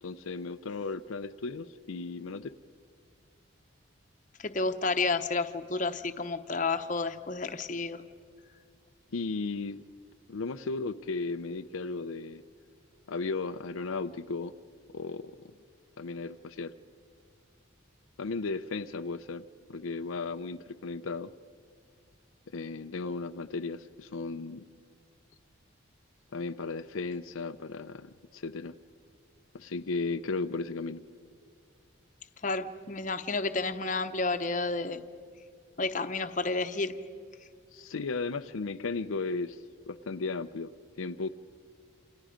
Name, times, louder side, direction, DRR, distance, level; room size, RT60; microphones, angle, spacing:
voice 1, 0.0-2.5 9.1-9.8 10.3-12.4 13.1-14.5 14.9-15.5 16.0-16.7 18.2-19.4 19.7-21.3 22.5-24.6 26.3-28.7 29.5-31.0 37.7-39.6 39.9-40.7 41.0-41.3, left 3 dB, 80° left, 9 dB, 0.6 m, -35 dB
voice 2, 4.4-8.0 32.4-35.0 35.8-36.9, left 3 dB, 40° left, 8 dB, 0.9 m, -31 dB
28.5 x 27.5 x 5.1 m, 2.1 s
head